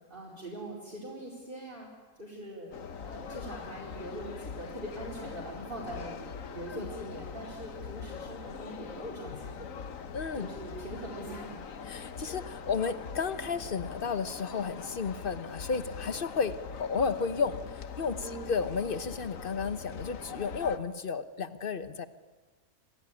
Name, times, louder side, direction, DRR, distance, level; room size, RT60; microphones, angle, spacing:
voice 1, 0.1-1.9 2.2-6.2 6.5-9.7 10.3-11.6 18.2-18.5, right 1 dB, 30° right, -5 dB, 4.9 m, -42 dB
sound 1, 2.7-20.8, left 6 dB, 60° left, 1.5 m, -42 dB
voice 2, 10.1-10.5 11.9-22.1, left 5 dB, 40° left, 12 dB, 1.1 m, -33 dB
26.0 x 16.5 x 9.9 m, 1.3 s
omnidirectional pair, 1.6 m